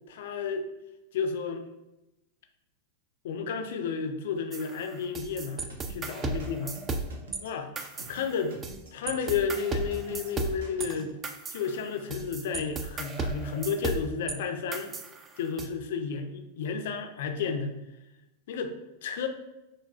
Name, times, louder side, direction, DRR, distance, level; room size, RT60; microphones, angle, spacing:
voice 1, 0.1-0.7 1.1-1.6 3.2-6.8 7.4-7.7 8.1-8.6 8.9-11.1 11.5-14.9 15.4-17.7 18.5-19.3, left 6 dB, 55° left, 6 dB, 0.4 m, -32 dB
sound 1, 4.5-7.4 7.8-8.8 9.1-14.4 14.7-15.7, right 3 dB, 25° right, 0.3 m, -35 dB
sound 2, 5.7-11.2, right 2 dB, 65° right, 0.7 m, -48 dB
5.7 x 2.3 x 2.4 m, 0.95 s
figure-of-eight pair, 90°, 0 cm